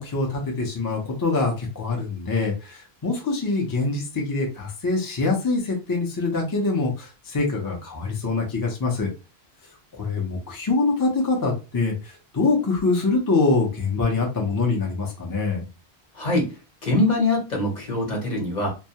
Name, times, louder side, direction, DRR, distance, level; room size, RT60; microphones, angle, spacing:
voice 1, 0.0-9.1 9.9-15.6, left 3 dB, 30° left, -1 dB, 0.4 m, -24 dB
voice 2, 16.1-16.6 16.8-18.7, left 2 dB, 45° left, 0 dB, 0.8 m, -23 dB
2.2 x 2.1 x 2.7 m, 0.29 s
omnidirectional pair, 1.1 m